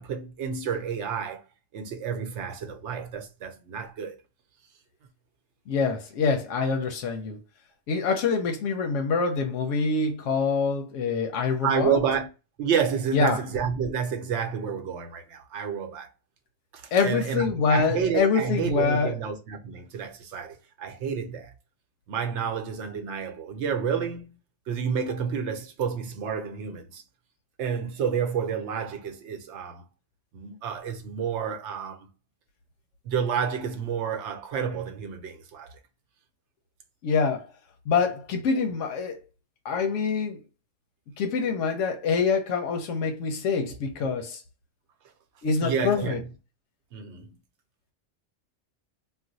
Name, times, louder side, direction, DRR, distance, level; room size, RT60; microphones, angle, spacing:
voice 1, 0.0-1.4 1.7-4.2 11.6-12.3 12.6-16.1 16.7-21.5 22.1-24.4 24.7-27.0 27.6-29.8 30.3-32.1 33.0-35.8 45.6-46.3 46.9-47.3, right 7 dB, 75° right, 0.9 m, -30 dB
voice 2, 5.7-7.4 7.9-12.0 13.1-13.4 16.9-19.2 37.0-37.5 37.9-39.2 39.6-40.4 41.2-44.4 45.4-46.2, left 5 dB, 90° left, 0.9 m, -25 dB
2.4 x 2.1 x 3.8 m
omnidirectional pair, 1.2 m